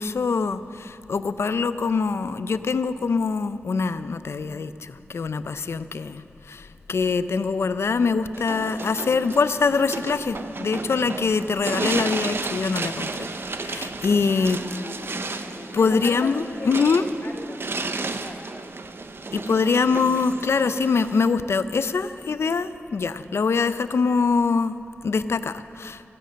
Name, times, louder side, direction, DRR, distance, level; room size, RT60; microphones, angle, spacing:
voice 1, 0.0-6.2 6.5-13.3 13.6-14.6 15.7-17.0 19.3-24.7 25.0-26.0, left 4 dB, 85° left, 12 dB, 0.5 m, -24 dB
sound 1, 8.3-21.3, right 3 dB, 60° right, 0.7 m, -33 dB
voice 2, 14.4-18.7 19.9-20.2, left 1 dB, 55° left, -7 dB, 2.4 m, -39 dB
15.5 x 10.5 x 7.5 m, 2.6 s
wide cardioid pair, 55°, 4 cm